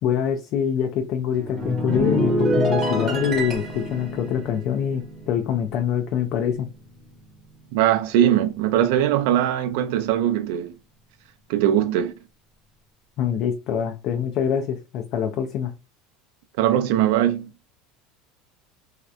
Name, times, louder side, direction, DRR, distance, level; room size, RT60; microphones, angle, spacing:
voice 1, 0.0-6.7 13.2-15.7, left 8 dB, 45° left, 0.3 m, -25 dB
sound 1, 1.3-6.0 6.2-6.6, equal, 25° right, 1.1 m, -26 dB
voice 2, 7.7-10.7 11.5-12.1 16.6-17.5, right 11 dB, 70° right, 0.4 m, -20 dB
2.7 x 2.1 x 2.3 m
cardioid pair, 165°, 0 cm